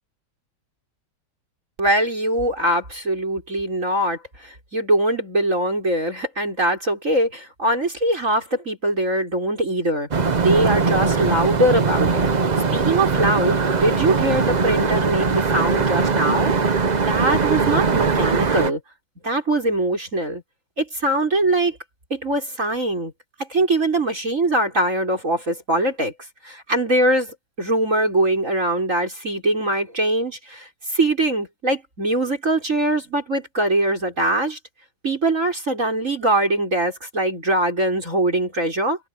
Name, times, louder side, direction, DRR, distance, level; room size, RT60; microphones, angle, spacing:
voice 1, 1.8-10.1 10.4-12.3 12.7-16.5 17.0-18.8 19.2-20.4 20.8-21.8 22.1-23.1 23.4-26.1 26.4-34.6 35.0-39.0, right 1 dB, 35° right, 6.3 m, -22 dB
sound 1, 10.1-18.7, right 4 dB, 60° right, 0.4 m, -20 dB
omnidirectional pair, 2.3 m